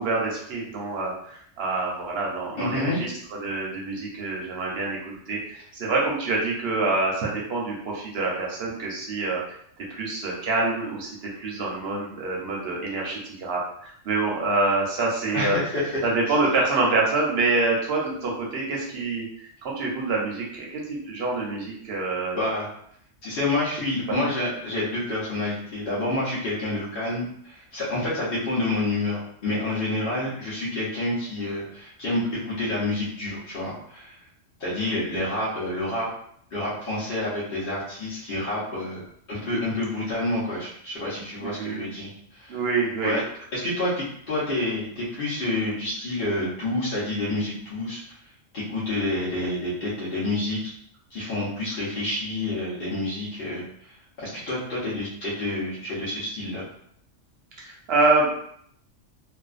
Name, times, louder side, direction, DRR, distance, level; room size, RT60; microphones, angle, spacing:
voice 1, 0.0-3.1 3.4-9.6 9.9-15.6 16.0-22.4 34.9-35.1 41.4-41.8 42.5-43.2 57.6-58.3, right 3 dB, 65° right, -2 dB, 0.8 m, -26 dB
voice 2, 2.6-3.0 15.3-16.1 22.3-22.7 23.2-34.1 34.6-36.1 36.5-42.6 43.0-43.2 43.5-48.1 48.5-50.7 51.1-53.9 54.2-56.6, left 2 dB, 55° left, -9 dB, 0.9 m, -28 dB
2.5 x 2.2 x 2.4 m, 0.67 s
omnidirectional pair, 1.3 m